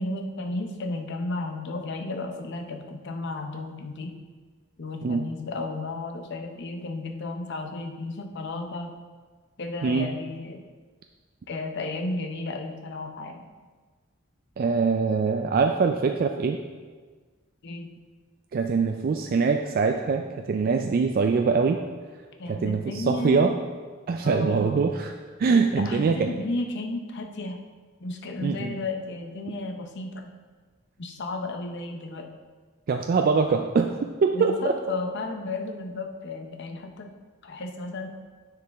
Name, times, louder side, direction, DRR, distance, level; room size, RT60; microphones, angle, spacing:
voice 1, 0.0-4.1 4.8-8.9 9.6-10.6 11.5-13.4 17.6-17.9 22.4-23.6 24.2-24.8 25.7-27.6 28.0-30.3 31.0-32.3 34.3-37.1 37.4-38.1, left 2 dB, 60° left, 4 dB, 0.7 m, -33 dB
voice 2, 14.6-16.6 18.5-21.8 22.5-23.6 24.1-25.1 25.4-26.3 28.4-28.8 32.9-34.7, right 5 dB, 45° right, 4 dB, 0.3 m, -23 dB
9.4 x 4.8 x 3.4 m, 1.4 s
head